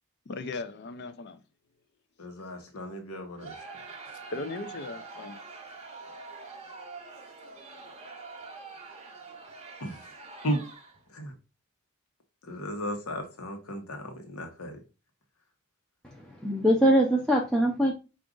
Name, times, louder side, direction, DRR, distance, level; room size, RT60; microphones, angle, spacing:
voice 1, 0.3-1.4 4.3-5.4, left 3 dB, 50° left, 0.5 m, -37 dB
voice 2, 2.2-3.5 9.8-10.0 10.4-10.7 11.1-11.3 12.4-14.8, equal, 75° left, 1.0 m, -35 dB
Crowd, 3.4-11.1, right 4 dB, 30° right, 0.8 m, -45 dB
voice 3, 16.2-17.9, equal, 5° left, 0.5 m, -23 dB
4.8 x 2.5 x 3.7 m
head